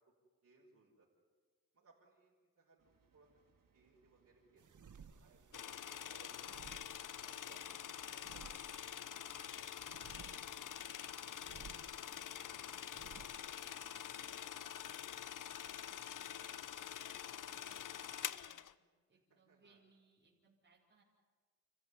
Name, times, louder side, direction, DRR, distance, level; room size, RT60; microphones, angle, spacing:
voice 1, 0.4-1.1 1.7-3.3 3.7-4.6 5.1-6.7 7.2-9.9 19.3-19.8, right 4 dB, 50° right, -7 dB, 5.4 m, -67 dB
sound 1, 2.8-13.7, right 6 dB, 90° right, 4.3 m, -74 dB
sound 2, 4.6-14.4, right 6 dB, 65° right, 1.9 m, -60 dB
sound 3, 5.5-18.7, left 9 dB, 70° left, 0.8 m, -46 dB
voice 2, 10.1-13.4 13.8-17.2 17.4-18.6 19.1-21.0, right 3 dB, 35° right, -6 dB, 4.6 m, -72 dB
29.0 x 15.5 x 9.7 m, 1.5 s
wide cardioid pair, 115°, 32 cm